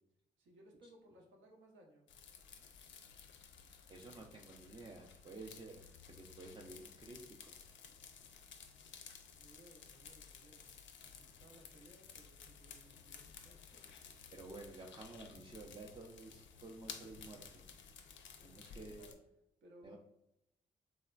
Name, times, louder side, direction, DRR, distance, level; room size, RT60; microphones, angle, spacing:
voice 1, 0.4-2.1 9.3-10.7 11.0-14.1 18.6-19.2 19.6-20.0, right 1 dB, 70° right, 1 dB, 0.7 m, -62 dB
sound 1, 2.1-19.1, left 6 dB, 65° left, 0.4 m, -55 dB
voice 2, 3.9-5.8 6.1-7.6 14.3-17.6 18.4-19.1 19.8-20.0, right 2 dB, 25° right, -1 dB, 0.4 m, -52 dB
3.2 x 2.1 x 2.3 m, 0.83 s
supercardioid pair, 45°, 21 cm